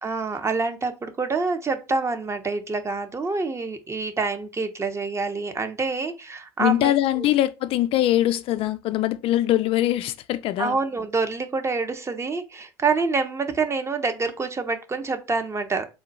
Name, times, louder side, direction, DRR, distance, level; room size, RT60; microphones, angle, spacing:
voice 1, 0.0-7.3 10.6-15.9, right 4 dB, 25° right, 0.7 m, -27 dB
voice 2, 6.6-10.8, left 14 dB, 55° left, 0.4 m, -22 dB
3.7 x 2.2 x 3.9 m
hypercardioid pair, 75°, 11 cm